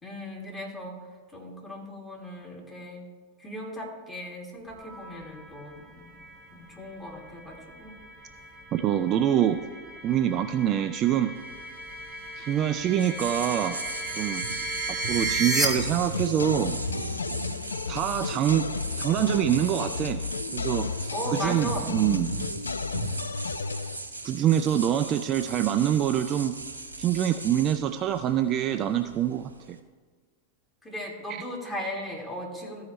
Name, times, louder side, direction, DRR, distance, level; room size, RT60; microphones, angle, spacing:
voice 1, 0.0-1.0 1.3-3.1 3.4-6.1 6.5-7.9 21.1-21.9 30.8-32.9, equal, 10° left, -2 dB, 2.1 m, -37 dB
sound 1, 4.7-15.7, right 2 dB, 5° right, 2.0 m, -35 dB
voice 2, 8.7-9.6 10.0-11.3 12.4-13.8 14.2-14.4 15.0-16.8 17.9-18.7 19.0-20.2 20.5-22.3 24.2-26.5 27.0-29.8 31.3-31.4, right 10 dB, 30° right, 8 dB, 0.3 m, -25 dB
sound 2, 11.4-29.8, right 2 dB, 80° right, 0.7 m, -38 dB
sound 3, 15.6-24.0, left 5 dB, 75° left, 0.3 m, -33 dB
14.0 x 4.8 x 4.1 m, 1.5 s
figure-of-eight pair, 90°, 0 cm